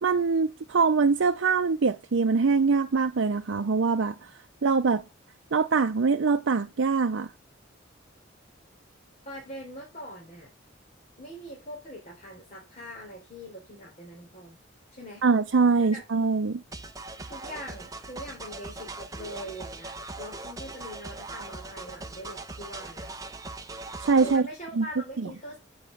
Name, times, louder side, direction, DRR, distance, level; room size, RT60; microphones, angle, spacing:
voice 1, 0.0-4.3 4.6-5.0 5.5-7.3 15.2-16.6 24.0-24.4 24.8-24.9, right 4 dB, 70° right, 0.5 m, -23 dB
voice 2, 9.3-10.5 11.2-14.6 14.9-15.2 15.8-16.0 17.3-23.1 24.2-25.6, equal, 35° left, 3.7 m, -42 dB
sound 1, 16.7-24.4, right 2 dB, 15° right, 0.7 m, -40 dB
8.5 x 6.0 x 6.5 m
head